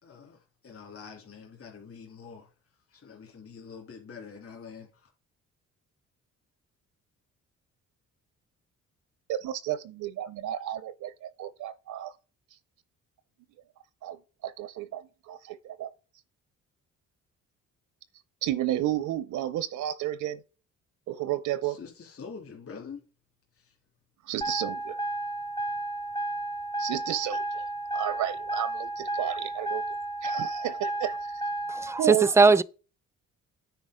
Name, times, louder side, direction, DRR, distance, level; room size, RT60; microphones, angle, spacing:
voice 1, 0.0-2.5 2.9-5.1 21.6-23.0 23.5-23.8, left 5 dB, 50° left, 2.9 m, -45 dB
voice 2, 9.3-12.1 14.0-14.2 14.4-15.9 18.4-20.4 21.1-21.8 24.2-25.0 26.8-27.7 27.9-29.8 30.2-31.4 32.0-32.3, right 12 dB, 75° right, 0.7 m, -32 dB
Car Seatbelt Alarm, 24.4-32.0, right 2 dB, 15° left, 0.7 m, -32 dB
voice 3, 31.7-32.6, right 4 dB, 10° right, 0.4 m, -20 dB
9.4 x 4.3 x 5.0 m
cardioid pair, 90°, 30 cm